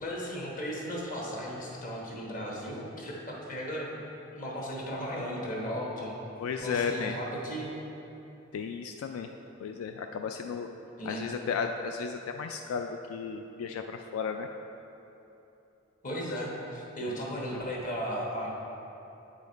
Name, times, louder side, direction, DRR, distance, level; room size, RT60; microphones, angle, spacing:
voice 1, 0.0-4.0 4.3-6.2 6.6-7.8 11.0-11.2 16.0-18.5, equal, 40° left, -3 dB, 1.1 m, -36 dB
voice 2, 6.4-7.2 8.5-9.3 9.6-10.7 11.1-14.5 17.1-17.2 17.5-17.6, left 6 dB, 80° left, 6 dB, 0.3 m, -34 dB
8.4 x 5.1 x 3.9 m, 3.0 s
head